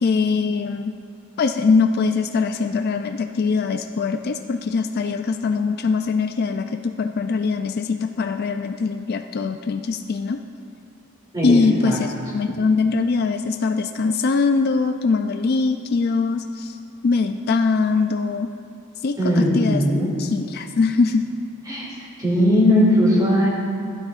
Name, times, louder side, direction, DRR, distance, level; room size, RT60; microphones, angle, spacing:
voice 1, 0.0-1.0 1.4-10.4 11.4-16.8 17.0-18.5 19.0-19.8 20.2-21.3, left 4 dB, 45° left, 6 dB, 0.3 m, -22 dB
voice 2, 11.3-12.0 12.5-12.6 19.2-20.1 21.7-21.9 22.2-23.5, equal, 20° right, -5 dB, 2.6 m, -18 dB
16.0 x 11.5 x 2.5 m, 2.3 s
head